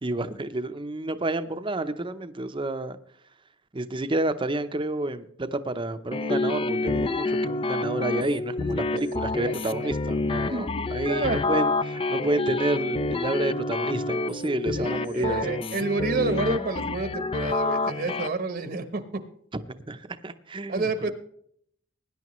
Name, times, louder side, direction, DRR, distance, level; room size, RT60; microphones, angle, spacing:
voice 1, 0.0-3.0 3.7-15.8 19.5-21.1, right 2 dB, 25° right, 0.7 m, -30 dB
sound 1, 6.1-18.3, left 3 dB, 25° left, 0.4 m, -28 dB
voice 2, 9.5-9.9 10.5-10.7 11.1-11.4 14.8-19.2 20.7-21.1, right 3 dB, 50° right, 1.0 m, -29 dB
19.5 x 10.0 x 3.1 m
head